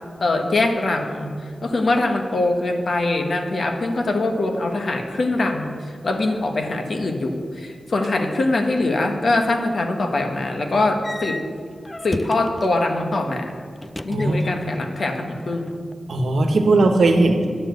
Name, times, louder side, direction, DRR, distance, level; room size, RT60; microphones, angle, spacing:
voice 1, 0.2-1.3 1.6-11.4 12.0-13.6 14.0-15.8, left 2 dB, 55° left, 4 dB, 1.2 m, -23 dB
sound 1, 11.0-12.8 13.8-14.8 15.1-15.9, left 1 dB, 15° left, 0.3 m, -34 dB
voice 2, 14.1-14.4 16.1-17.5, right 2 dB, 75° right, 6 dB, 1.2 m, -18 dB
10.0 x 7.3 x 8.0 m, 2.1 s
wide cardioid pair, 125°, 0 cm